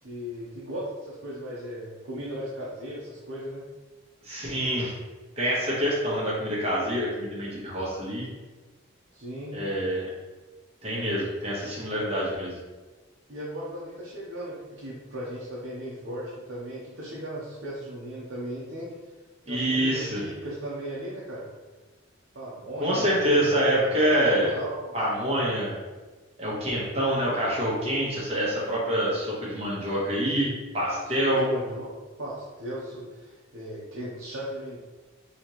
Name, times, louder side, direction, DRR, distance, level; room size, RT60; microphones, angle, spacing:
voice 1, 0.0-3.7 9.1-9.6 13.3-18.9 19.5-21.5 22.3-24.0 24.3-25.0 31.0-31.9 32.2-34.8, equal, 70° right, -6 dB, 0.8 m, -37 dB
voice 2, 4.2-4.9 5.4-8.3 9.5-10.1 10.8-12.6 19.5-20.2 22.8-24.5 24.9-25.7 26.4-31.4, equal, 30° right, -6 dB, 1.1 m, -26 dB
4.1 x 3.0 x 3.0 m, 1.3 s
head